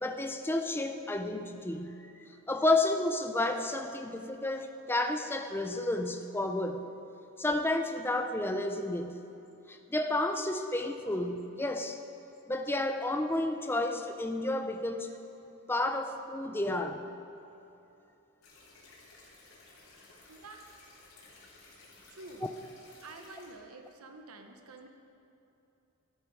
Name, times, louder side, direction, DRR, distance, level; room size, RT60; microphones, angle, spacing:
voice 1, 0.0-2.1 2.5-6.9 7.4-9.2 9.7-12.0 12.5-15.1 15.7-17.1, left 2 dB, 10° left, 6 dB, 0.5 m, -31 dB
sound 1, 18.4-23.5, left 2 dB, 75° left, 3.5 m, -56 dB
voice 2, 20.3-20.6 22.1-22.6 23.0-24.9, right 2 dB, 85° right, 5 dB, 1.0 m, -49 dB
14.0 x 11.0 x 4.7 m, 2.9 s
head